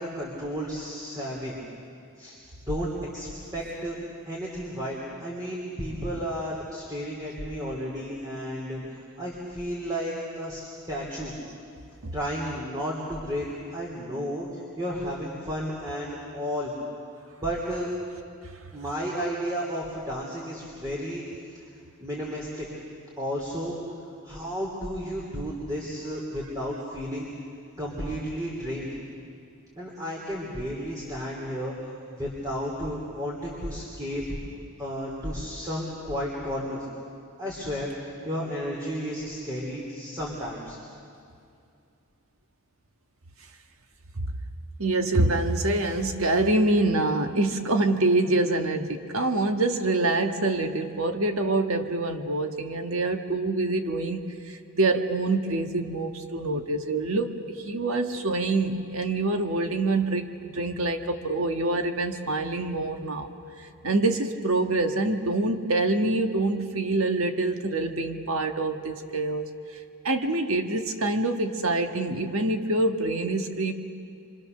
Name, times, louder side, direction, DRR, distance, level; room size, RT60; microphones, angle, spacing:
voice 1, 0.0-1.6 2.2-2.4 2.7-4.0 4.2-10.6 10.9-11.3 12.1-16.7 17.4-17.9 18.7-21.2 21.5-21.6 22.0-22.7 23.2-23.8 24.2-27.3 27.8-28.9 29.8-34.2 34.8-36.9 37.4-40.8, equal, 15° right, -4 dB, 3.4 m, -32 dB
voice 2, 44.8-63.3 63.6-69.5 70.0-73.7, right 2 dB, 65° right, 5 dB, 1.6 m, -26 dB
28.0 x 25.0 x 6.7 m, 2.5 s
head